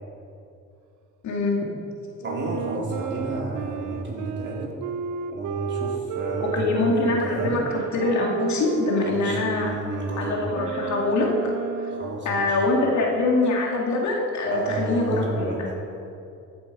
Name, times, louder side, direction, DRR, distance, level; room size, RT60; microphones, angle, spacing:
voice 1, 1.2-1.7 6.4-9.7 10.2-11.4 11.8-11.9 12.2-15.7, left 2 dB, 70° left, -1 dB, 2.3 m, -24 dB
voice 2, 2.2-4.8 5.3-7.6 9.1-10.4 11.9-12.6 14.4-15.7, right 2 dB, 35° right, -3 dB, 3.5 m, -31 dB
Wind instrument woodwind instrument, 2.2-12.3, right 7 dB, 75° right, 0.6 m, -32 dB
14.5 x 8.6 x 5.3 m, 2.6 s
cardioid pair, 90°, 30 cm